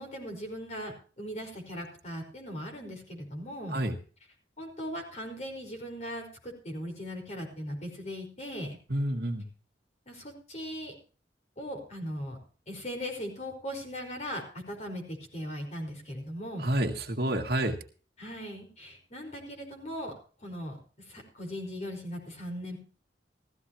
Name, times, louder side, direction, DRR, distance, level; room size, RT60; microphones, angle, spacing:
voice 1, 0.0-3.8 4.6-8.8 10.1-10.9 11.6-12.4 12.7-16.6 18.2-20.1 20.4-20.8 21.1-22.8, equal, 40° left, 2 dB, 5.0 m, -39 dB
voice 2, 8.9-9.4 16.6-17.8, right 1 dB, 60° right, 3 dB, 1.9 m, -29 dB
16.0 x 14.5 x 3.0 m, 0.39 s
head